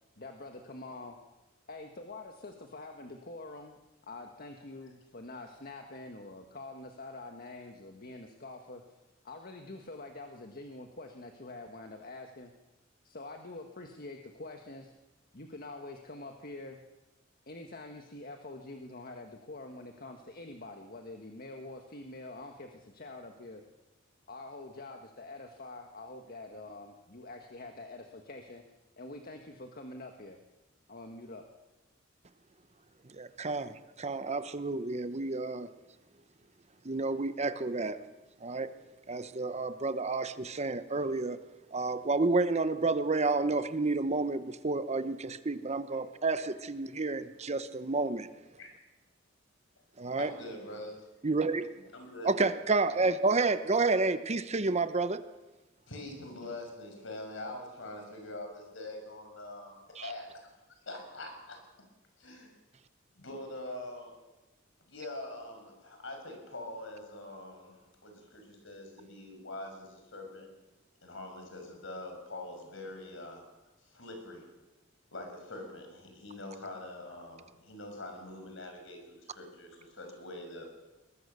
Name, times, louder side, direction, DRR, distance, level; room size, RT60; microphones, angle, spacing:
voice 1, 0.2-1.2 1.7-3.8 4.1-8.8 9.2-12.5 13.0-14.9 15.3-16.8 17.5-23.6 24.3-28.6 29.0-30.4 30.9-31.4, left 2 dB, 50° left, 4 dB, 1.5 m, -46 dB
voice 2, 33.1-35.7 36.8-38.0 38.4-38.7 39.1-41.4 41.7-48.3 50.0-50.3 51.2-51.7 52.2-55.2 60.0-60.1, right 3 dB, 35° right, 12 dB, 0.9 m, -30 dB
voice 3, 50.2-51.2 51.9-52.4 55.9-59.8 60.0-61.9 62.2-62.6 63.1-64.2 64.9-70.5 71.0-73.5 73.9-74.5 75.1-80.7, left 1 dB, 70° left, 4 dB, 6.0 m, -44 dB
22.0 x 20.0 x 6.8 m, 1.1 s
head